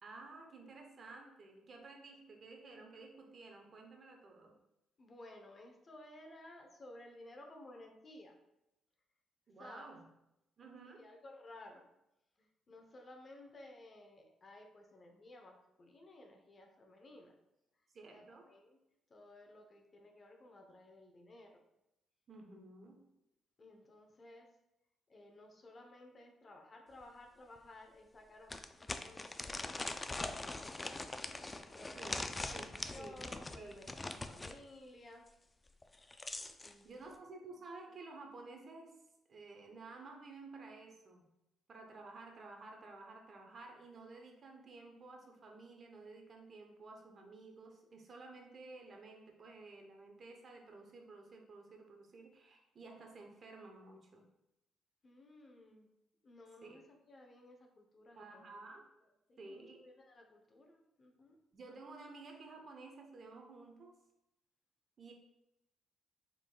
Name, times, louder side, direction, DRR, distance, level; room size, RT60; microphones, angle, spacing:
voice 1, 0.0-4.6 9.5-10.1 10.6-11.1 17.9-18.5 22.3-23.1 31.9-32.2 32.5-33.2 33.6-33.8 36.8-38.9 39.3-41.2 41.7-54.3 56.6-56.8 58.2-58.9 59.4-59.9 61.5-64.0 65.0-65.1, right 3 dB, 50° right, 2 dB, 0.8 m, -53 dB
voice 2, 5.0-8.3 9.6-10.0 11.0-11.9 12.4-17.3 18.1-18.8 19.1-21.6 23.6-24.5 25.1-31.0 31.7-35.2 36.6-37.2 55.0-55.9 56.2-56.8 57.1-58.5 59.3-61.4, left 1 dB, 40° left, 3 dB, 0.7 m, -56 dB
sound 1, 27.0-27.1 27.6-27.7 28.5-34.6 35.8-36.7, left 2 dB, 20° left, 0.3 m, -42 dB
4.8 x 3.8 x 2.3 m, 0.87 s
cardioid pair, 90°, 0 cm